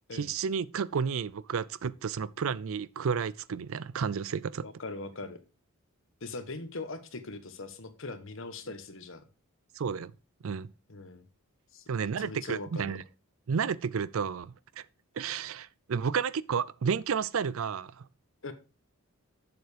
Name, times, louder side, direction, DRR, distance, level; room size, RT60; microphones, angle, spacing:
voice 1, 0.1-4.7 9.8-10.1 10.4-10.7 11.9-13.0 13.5-14.8 15.2-18.0, right 6 dB, 65° right, 0.4 m, -31 dB
voice 2, 4.6-5.4 6.2-9.2 10.9-11.2 11.7-12.9 18.4-18.5, left 3 dB, 60° left, 1.2 m, -41 dB
7.8 x 6.9 x 5.0 m
head